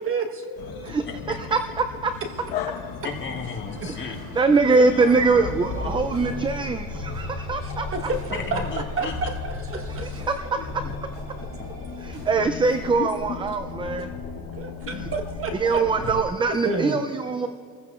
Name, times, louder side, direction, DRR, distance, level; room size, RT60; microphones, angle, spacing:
voice 1, 0.0-0.9 5.8-5.9 6.3-6.8 7.6-8.6 9.0-10.3 14.5-15.8 16.6-16.9, right 4 dB, 40° right, 4 dB, 1.3 m, -31 dB
sound 1, 0.6-6.5, left 7 dB, 85° left, 1.3 m, -37 dB
voice 2, 0.8-2.1 3.9-8.1 9.9-10.7 12.0-14.1 14.9-15.1 15.5-17.5, right 4 dB, 15° right, 8 dB, 0.4 m, -23 dB
sound 2, 2.3-13.0, right 2 dB, 55° right, 4.8 m, -45 dB
voice 3, 3.0-4.2 4.9-5.5 8.3-9.3 11.4-11.7 13.3-13.4, left 5 dB, 35° left, 1 dB, 1.7 m, -34 dB
sound 3, 5.1-16.2, left 4 dB, 50° left, 3.3 m, -35 dB
29.5 x 15.0 x 2.5 m, 2.2 s
cardioid pair, 130°, 35 cm